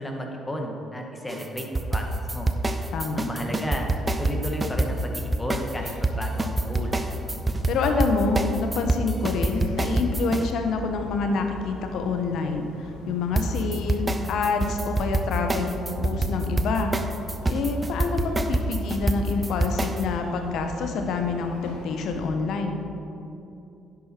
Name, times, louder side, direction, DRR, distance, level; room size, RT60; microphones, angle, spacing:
voice 1, 0.0-2.1 2.3-2.5 3.1-3.9 4.2-7.1, left 1 dB, 15° left, 1 dB, 1.9 m, -33 dB
sound 1, 1.3-10.4 13.4-20.0, right 2 dB, 25° right, 0.7 m, -26 dB
voice 2, 2.9-3.2 7.7-15.8 16.0-16.9 17.5-22.8, left 4 dB, 65° left, 5 dB, 1.0 m, -27 dB
sound 2, 5.0-22.3, left 1 dB, 85° left, 1.3 m, -41 dB
10.5 x 7.8 x 4.5 m, 2.8 s
hypercardioid pair, 50°, 0 cm